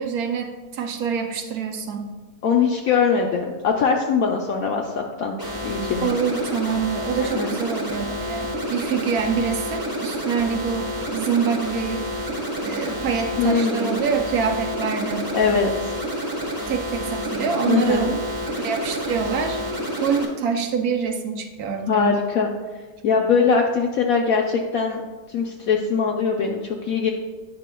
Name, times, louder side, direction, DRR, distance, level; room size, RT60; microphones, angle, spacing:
voice 1, 0.0-2.1 6.0-12.1 12.6-15.3 16.7-18.2 18.6-19.6 20.0-22.1, right 6 dB, 65° right, 4 dB, 1.1 m, -25 dB
voice 2, 2.4-5.4 5.6-6.1 7.3-7.5 13.4-14.0 15.3-15.9 17.7-18.1 21.9-22.5 23.0-25.0 25.3-27.1, left 5 dB, 70° left, 1 dB, 0.9 m, -21 dB
sound 1, 5.4-20.2, equal, 15° right, 1.0 m, -29 dB
9.4 x 5.6 x 2.2 m, 1.3 s
omnidirectional pair, 1.8 m